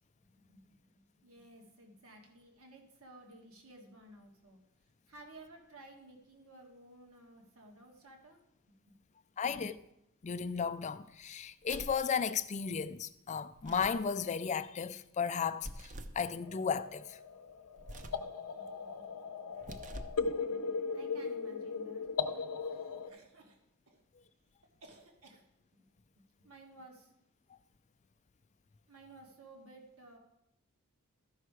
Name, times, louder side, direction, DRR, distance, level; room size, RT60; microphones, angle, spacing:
voice 1, 0.3-4.6 5.1-8.4 8.9-9.0 9.5-9.7 18.6-24.0 24.8-25.4 26.4-27.1 28.9-30.2, right 1 dB, 70° right, 1.6 m, -56 dB
voice 2, 9.4-9.7 10.2-17.2, left 6 dB, 30° left, 0.4 m, -34 dB
sound 1, 11.6-12.1 13.5-14.1 15.6-16.2 17.8-18.3 19.5-20.3, right 1 dB, 35° right, 0.6 m, -46 dB
sound 2, 16.4-23.1, left 5 dB, 90° left, 0.6 m, -38 dB
13.0 x 5.6 x 4.7 m
head